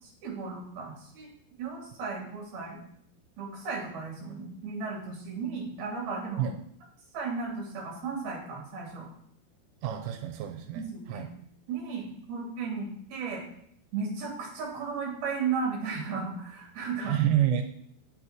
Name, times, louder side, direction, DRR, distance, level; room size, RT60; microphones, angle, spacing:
voice 1, 0.0-1.3 1.6-2.8 3.4-6.5 7.1-9.1 10.7-11.2 11.7-13.5 13.9-17.1, right 5 dB, 55° right, -3 dB, 4.6 m, -35 dB
voice 2, 9.8-11.3 17.1-17.6, right 10 dB, 90° right, 5 dB, 3.3 m, -28 dB
17.5 x 6.4 x 3.0 m, 0.67 s
omnidirectional pair, 5.7 m